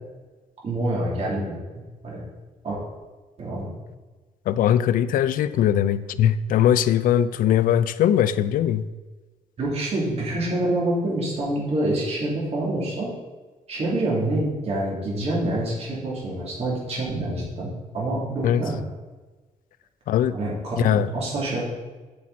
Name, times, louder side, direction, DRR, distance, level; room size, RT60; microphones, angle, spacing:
voice 1, 0.6-2.2 2.6-2.8 3.4-3.7 9.6-13.1 13.7-18.8 20.3-21.7, right 1 dB, 45° right, -5 dB, 3.2 m, -27 dB
voice 2, 4.5-8.8 18.4-18.6 20.1-20.4 20.8-21.1, left 10 dB, 75° left, 14 dB, 0.4 m, -20 dB
8.5 x 7.5 x 4.1 m, 1.3 s
cardioid pair, 140°, 14 cm